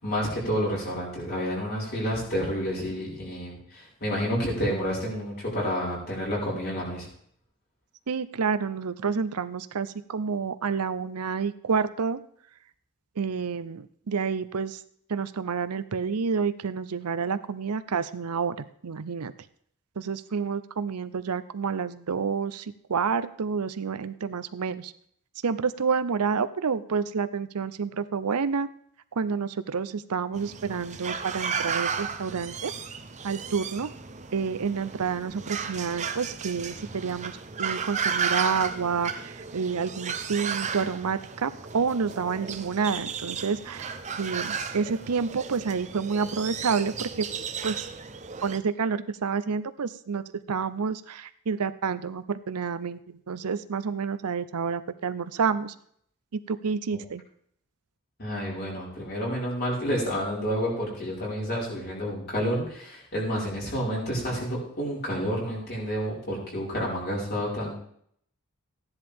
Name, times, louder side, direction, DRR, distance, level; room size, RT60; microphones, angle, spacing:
voice 1, 0.0-7.1 56.9-57.0 58.2-67.8, equal, 45° left, -4 dB, 5.0 m, -29 dB
voice 2, 8.1-12.2 13.2-14.8 15.1-19.3 20.0-24.9 25.4-28.7 29.2-32.7 33.2-33.9 34.3-37.3 37.6-47.3 47.6-47.9 48.4-55.7 56.3-57.2, right 5 dB, 85° right, 13 dB, 0.6 m, -29 dB
sound 1, 30.3-48.6, right 6 dB, 30° right, 0.7 m, -34 dB
15.0 x 10.5 x 3.6 m, 0.65 s
head